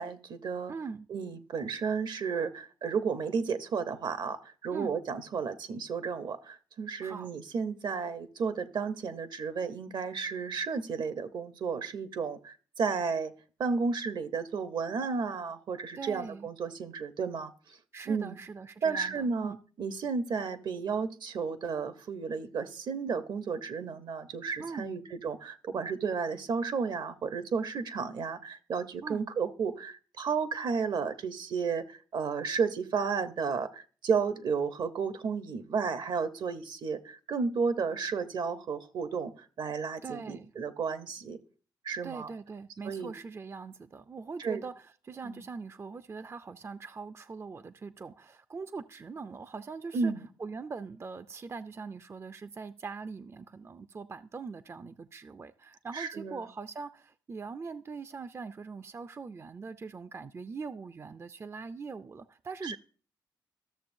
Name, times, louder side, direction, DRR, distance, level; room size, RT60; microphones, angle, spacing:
voice 1, 0.0-0.7 1.1-13.3 13.6-17.8 18.1-18.4 18.8-39.3 39.6-41.4 41.8-42.3 42.8-43.1 44.4-44.6 45.2-45.4 49.9-50.2 55.9-56.4 62.6-62.8, right 5 dB, 65° right, 0.8 m, -33 dB
voice 2, 0.7-1.1 4.7-4.9 7.0-7.3 15.9-16.5 17.9-19.6 24.6-24.9 29.0-29.3 40.0-40.5 42.0-50.1 50.4-62.8, right 4 dB, 35° right, 0.4 m, -42 dB
13.5 x 6.7 x 2.6 m
supercardioid pair, 55°, 8 cm